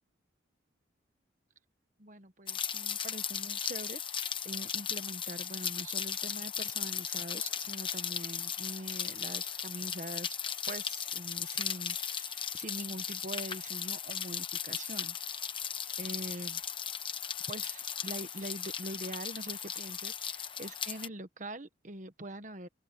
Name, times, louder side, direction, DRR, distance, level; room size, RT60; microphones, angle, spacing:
voice 1, 2.0-10.3 10.7-15.2 16.0-16.6 17.5-22.7, right 1 dB, 40° right, 1.3 m, -43 dB
Rain, 2.5-21.1, left 8 dB, 25° left, 1.0 m, -37 dB
open air
head